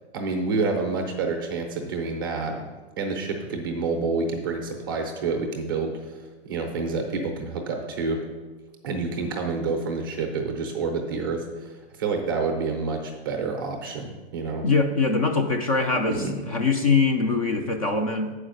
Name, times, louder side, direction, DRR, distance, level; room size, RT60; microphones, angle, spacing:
voice 1, 0.1-2.7 3.0-8.2 8.8-11.7 12.0-14.6 15.9-16.4, right 4 dB, 20° right, 3 dB, 0.5 m, -28 dB
voice 2, 14.6-18.3, left 4 dB, 35° left, 5 dB, 0.4 m, -23 dB
7.2 x 4.8 x 6.3 m, 1.3 s
supercardioid pair, 180°, 33 cm